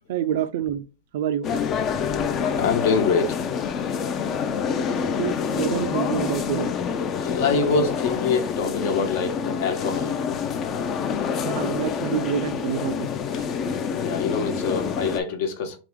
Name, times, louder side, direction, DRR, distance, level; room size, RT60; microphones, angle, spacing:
voice 1, 0.1-0.8 1.1-1.5 5.2-6.7 11.4-13.1 13.4-13.5, right 10 dB, 70° right, 0.4 m, -27 dB
sound 1, 1.4-15.2, left 6 dB, 30° left, 0.5 m, -27 dB
voice 2, 2.2-3.4 7.2-10.5 13.8-15.8, left 5 dB, 65° left, 1.1 m, -25 dB
3.5 x 3.4 x 3.5 m
supercardioid pair, 145°, 0 cm